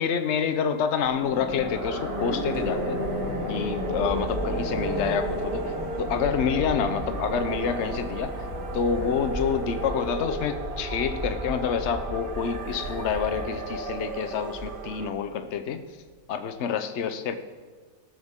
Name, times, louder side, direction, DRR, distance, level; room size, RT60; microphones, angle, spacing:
voice 1, 0.0-3.0 3.5-5.7 6.0-8.3 8.7-15.8 16.3-17.4, left 7 dB, 55° left, 9 dB, 1.0 m, -28 dB
sound 1, 1.0-15.1, equal, 70° right, 6.0 m, -32 dB
sound 2, 1.9-15.1, right 5 dB, 45° right, 0.7 m, -41 dB
20.0 x 12.0 x 3.7 m, 1.5 s
omnidirectional pair, 1.6 m